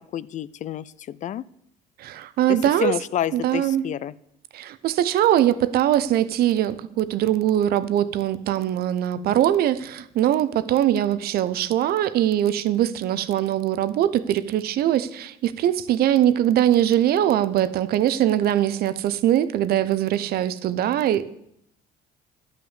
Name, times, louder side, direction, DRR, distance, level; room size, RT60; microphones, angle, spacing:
voice 1, 0.1-1.4 2.5-4.1, left 10 dB, 45° left, 19 dB, 0.4 m, -29 dB
voice 2, 2.0-2.9 3.3-3.8 4.5-21.3, right 11 dB, 65° right, 15 dB, 0.7 m, -22 dB
11.5 x 5.8 x 7.2 m, 0.74 s
cardioid pair, 110°, 17 cm